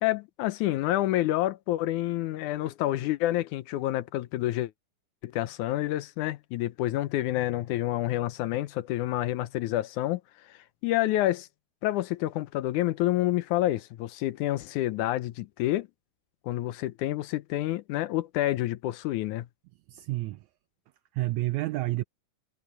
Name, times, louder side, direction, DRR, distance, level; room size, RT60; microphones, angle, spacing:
voice 1, 0.0-4.7 5.2-10.2 10.5-10.6 10.8-11.5 11.8-15.9 16.4-19.5, left 15 dB, 75° left, 2.1 m, -28 dB
voice 2, 19.9-20.4 21.1-22.0, right 18 dB, 80° right, 1.7 m, -29 dB
omnidirectional pair, 3.7 m